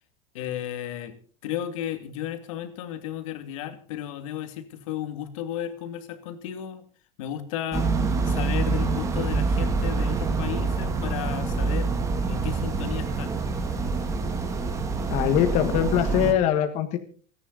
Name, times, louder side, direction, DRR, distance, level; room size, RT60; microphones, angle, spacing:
voice 1, 0.3-6.8 7.2-7.9 8.2-11.9 12.3-13.4, left 11 dB, 85° left, 8 dB, 2.5 m, -34 dB
sound 1, 7.7-16.3, right 4 dB, 20° right, 2.5 m, -26 dB
voice 2, 15.1-17.0, left 10 dB, 45° left, 7 dB, 1.6 m, -22 dB
29.0 x 10.0 x 4.0 m, 0.42 s
supercardioid pair, 160°, 16 cm